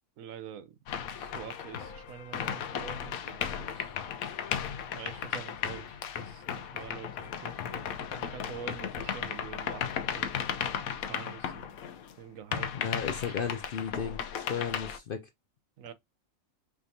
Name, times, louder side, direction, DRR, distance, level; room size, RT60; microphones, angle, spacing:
voice 1, 0.2-0.8 1.2-4.1 4.9-10.4 11.0-11.6 12.2-12.8 13.3-13.4 15.8-15.9, right 8 dB, 75° right, 1.0 m, -46 dB
sound 1, 0.9-12.1 12.5-15.0, left 8 dB, 90° left, 1.1 m, -35 dB
voice 2, 12.7-15.3, left 7 dB, 60° left, 0.6 m, -34 dB
4.9 x 3.5 x 2.7 m
omnidirectional pair, 1.4 m